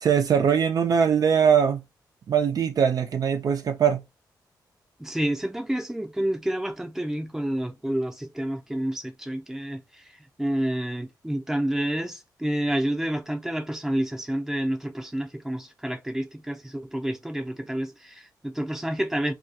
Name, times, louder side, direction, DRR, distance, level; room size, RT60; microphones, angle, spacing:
voice 1, 0.0-1.8 2.3-4.0, right 7 dB, 55° right, 0.4 m, -21 dB
voice 2, 5.0-19.3, right 1 dB, 5° right, 0.5 m, -29 dB
2.3 x 2.3 x 2.8 m
cardioid pair, 90°, 8 cm